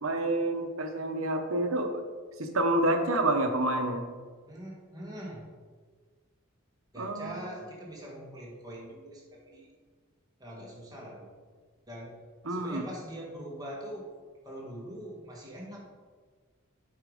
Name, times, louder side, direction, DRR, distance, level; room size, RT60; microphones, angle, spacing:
voice 1, 0.0-2.0 2.4-4.0 7.0-7.3 12.5-12.8, right 1 dB, 90° right, 5 dB, 1.0 m, -28 dB
voice 2, 4.5-5.5 6.9-9.7 10.4-11.3 11.9-12.2 12.5-14.1 14.4-15.8, equal, 20° right, -3 dB, 1.9 m, -42 dB
8.3 x 4.9 x 5.1 m, 1.5 s
head